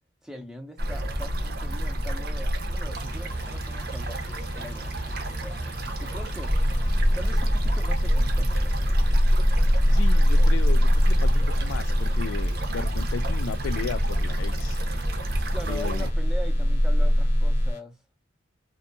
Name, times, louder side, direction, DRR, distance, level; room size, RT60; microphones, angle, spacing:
voice 1, 0.2-6.5 7.1-8.9 15.4-18.0, equal, 5° right, 0.5 m, -42 dB
sound 1, 0.8-16.1, right 1 dB, 50° right, 0.6 m, -32 dB
sound 2, 2.9-17.8, left 3 dB, 35° left, 0.7 m, -50 dB
sound 3, 6.5-17.7, equal, 85° right, 1.0 m, -22 dB
voice 2, 9.9-14.8 15.7-16.1, left 6 dB, 80° left, 0.3 m, -35 dB
2.6 x 2.2 x 2.5 m
head